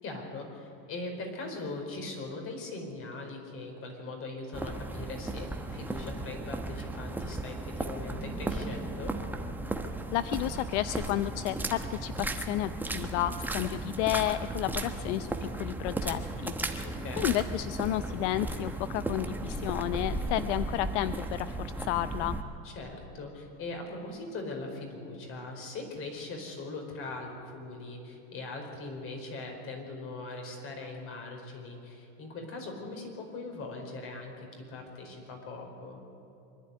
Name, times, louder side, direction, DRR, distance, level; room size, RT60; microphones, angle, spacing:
voice 1, 0.0-9.1 16.8-17.3 22.6-36.0, left 3 dB, 40° left, 3 dB, 4.7 m, -40 dB
sound 1, 4.5-22.4, right 2 dB, 5° right, 1.1 m, -35 dB
voice 2, 10.1-22.4, left 14 dB, 75° left, 13 dB, 0.7 m, -32 dB
25.0 x 11.5 x 9.7 m, 2.9 s
supercardioid pair, 130°, 35 cm